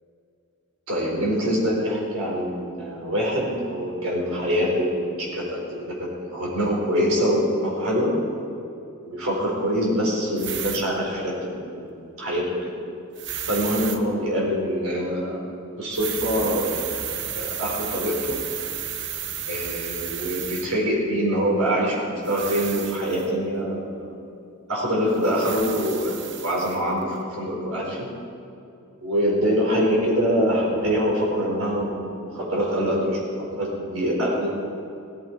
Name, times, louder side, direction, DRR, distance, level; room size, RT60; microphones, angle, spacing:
voice 1, 0.9-8.1 9.0-11.9 12.2-12.7 13.5-15.5 15.8-16.7 17.3-18.3 19.5-24.1 24.7-28.1 29.0-34.5, equal, 85° right, -3 dB, 4.3 m, -24 dB
sound 1, 10.4-10.8 13.2-14.0 15.9-20.7 22.2-23.3 25.2-26.8, right 9 dB, 55° right, 0.8 m, -32 dB
16.5 x 13.5 x 4.6 m, 2.6 s
head